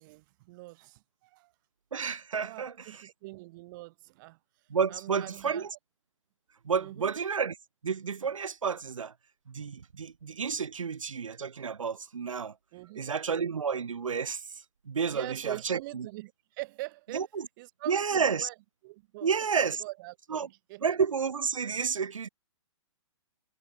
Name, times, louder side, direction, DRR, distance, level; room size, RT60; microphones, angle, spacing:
voice 1, 0.0-1.5 2.4-4.4 4.9-5.7 6.8-7.1 12.7-13.1 15.1-17.3 17.6-18.5 18.8-20.9, right 22 dB, 40° right, 5.7 m, -43 dB
voice 2, 1.9-3.1 4.7-5.7 6.7-7.6 7.8-9.1 9.5-12.5 13.0-14.5 14.9-16.1 17.1-17.5 17.9-18.5 19.2-19.8 20.3-20.5 20.8-22.3, right 6 dB, 90° right, 1.2 m, -30 dB
hypercardioid pair, 140°, 16 cm